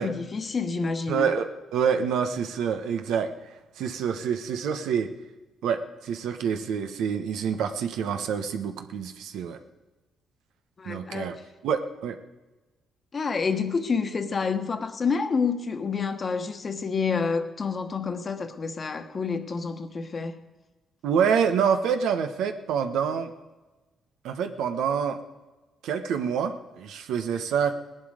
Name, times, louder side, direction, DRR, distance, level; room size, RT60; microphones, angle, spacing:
voice 1, 0.0-1.3 10.8-11.3 13.1-20.4, left 5 dB, 40° left, 8 dB, 1.3 m, -28 dB
voice 2, 1.1-3.3 3.8-5.1 5.6-9.6 10.8-11.4 11.6-12.2 21.0-23.3 24.2-25.2 25.8-27.8, right 7 dB, 85° right, 7 dB, 1.1 m, -27 dB
18.5 x 11.0 x 5.0 m, 1.2 s
cardioid pair, 90°, 0 cm